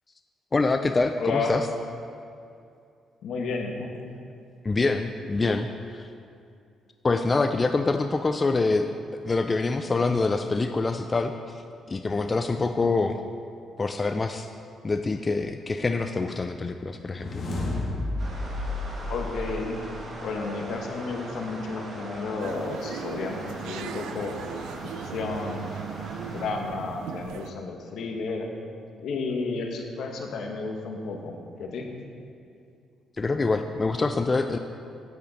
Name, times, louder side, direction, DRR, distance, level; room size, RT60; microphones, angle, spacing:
voice 1, 0.5-1.7 4.6-6.1 7.0-8.9 9.2-13.2 13.8-14.5 14.8-17.4 33.2-34.6, left 3 dB, 30° left, 7 dB, 0.4 m, -25 dB
voice 2, 1.2-1.6 3.2-3.9 19.1-19.9 20.2-24.3 25.0-25.7 26.3-28.5 29.0-31.9, left 4 dB, 75° left, 2 dB, 1.2 m, -32 dB
sound 1, 16.9-20.1, left 2 dB, 50° left, 1.8 m, -32 dB
sound 2, 18.2-26.4, right 1 dB, 50° right, 1.9 m, -41 dB
sound 3, 22.4-27.5, right 8 dB, 90° right, 0.3 m, -38 dB
8.5 x 8.5 x 4.1 m, 2.5 s
cardioid pair, 90°, 0 cm